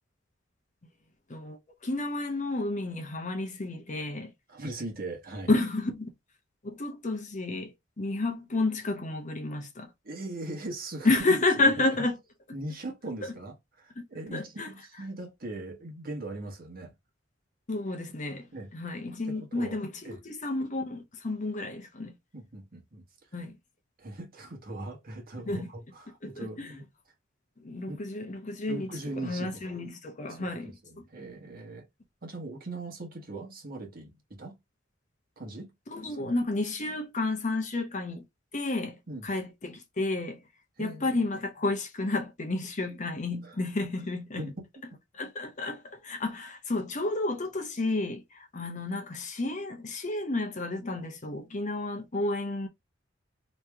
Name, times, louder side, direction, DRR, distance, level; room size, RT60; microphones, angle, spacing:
voice 1, 1.8-4.3 5.5-6.1 6.6-9.9 11.0-12.1 14.0-14.1 14.3-14.7 17.7-18.5 18.7-22.1 23.3-23.5 25.5-25.7 26.4-26.8 27.6-28.9 29.2-30.7 35.9-38.2 38.5-39.0 39.2-40.4 40.8-44.4 45.2-52.7, left 2 dB, 40° left, 0.8 m, -31 dB
voice 2, 4.5-5.5 10.0-12.0 12.5-16.9 18.5-18.7 19.2-19.8 20.0-20.2 22.3-23.0 24.0-26.9 27.9-28.0 28.7-29.7 30.3-31.8 32.2-34.6 35.4-35.7 36.0-36.3 39.1-39.3 40.8-41.2 43.4-43.6 44.4-44.7, right 2 dB, 50° right, 1.3 m, -40 dB
3.1 x 2.9 x 3.4 m
head